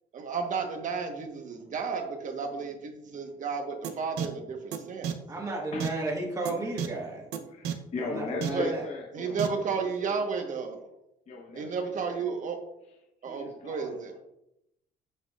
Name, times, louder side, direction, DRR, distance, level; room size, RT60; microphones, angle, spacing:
voice 1, 0.1-5.1 8.5-8.7 9.1-10.8 11.5-12.6 13.2-14.1, right 5 dB, 50° right, 4 dB, 1.3 m, -32 dB
sound 1, 3.8-3.9 4.2-4.3 4.7-4.8 5.0-5.1 5.8-5.9 6.4-6.5 6.8-6.9 7.3-7.4 7.6-7.7 8.4-8.5 9.4-9.5, right 9 dB, 85° right, 0.8 m, -30 dB
voice 2, 5.3-7.3 8.0-8.8, right 2 dB, 20° right, -3 dB, 1.6 m, -33 dB
voice 3, 7.5-10.3 11.3-12.3 12.9-13.0 13.3-14.2, left 3 dB, 40° left, 0 dB, 1.0 m, -39 dB
7.9 x 5.9 x 2.5 m, 0.84 s
cardioid pair, 110°, 17 cm